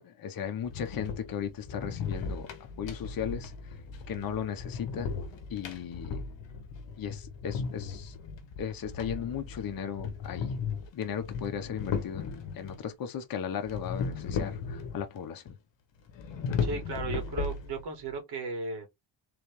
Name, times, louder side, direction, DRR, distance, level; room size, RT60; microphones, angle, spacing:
voice 1, 0.0-2.5 2.8-3.7 4.1-5.1 5.5-6.2 7.0-8.2 8.6-10.5 10.9-15.4, left 8 dB, 50° left, 1.0 m, -36 dB
sound 1, 0.6-12.8 13.7-15.2 15.5-15.6 16.1-18.0, left 5 dB, 70° left, 1.2 m, -36 dB
voice 2, 16.6-18.9, right 4 dB, 55° right, 2.3 m, -35 dB
3.9 x 3.4 x 3.1 m
cardioid pair, 115°, 45 cm